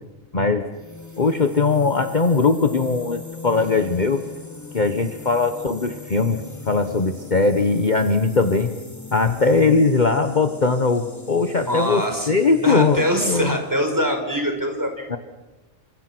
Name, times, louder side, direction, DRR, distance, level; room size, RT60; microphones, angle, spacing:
voice 1, 0.3-0.7 1.2-4.2 4.7-6.4 6.7-8.7 9.1-13.5 15.1-15.2, left 4 dB, 35° left, 7 dB, 1.4 m, -20 dB
sound 1, 0.7-14.1, left 4 dB, 15° left, 1.7 m, -40 dB
voice 2, 11.6-15.1, equal, 15° right, 3 dB, 5.3 m, -24 dB
29.5 x 27.0 x 6.2 m, 1.1 s
omnidirectional pair, 1.4 m